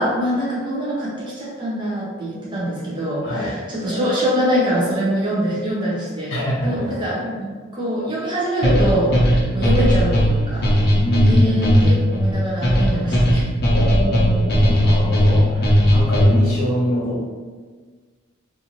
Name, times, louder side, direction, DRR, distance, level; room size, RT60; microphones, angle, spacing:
voice 1, 0.0-10.8 11.3-13.5, equal, 25° right, -7 dB, 0.6 m, -24 dB
voice 2, 3.2-3.5 6.3-6.9 10.9-11.9 13.7-17.2, equal, 80° left, -5 dB, 1.0 m, -24 dB
sound 1, 8.6-16.5, equal, 50° left, 0.7 m, -16 dB
2.6 x 2.4 x 2.9 m, 1.5 s
head